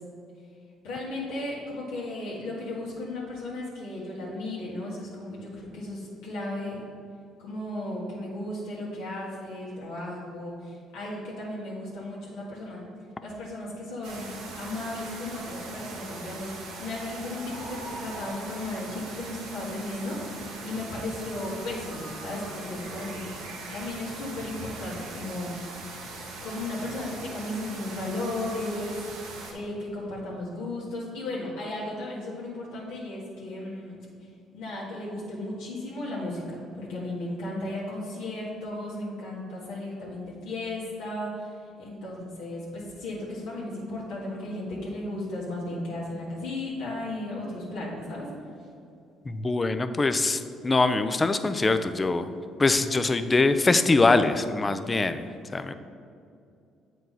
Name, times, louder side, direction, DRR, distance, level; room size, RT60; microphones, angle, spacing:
voice 1, 0.8-6.8 7.4-12.9 13.2-23.3 23.7-25.5 26.4-29.0 29.5-34.0 34.5-41.5 41.8-48.3, left 1 dB, 85° left, -6 dB, 1.5 m, -35 dB
sound 1, 14.0-29.5, right 3 dB, 85° right, 1.1 m, -40 dB
voice 2, 49.3-52.3 52.6-55.2 55.5-55.7, left 3 dB, 25° left, 10 dB, 0.4 m, -23 dB
7.6 x 4.6 x 4.1 m, 2.5 s
supercardioid pair, 75°, 0 cm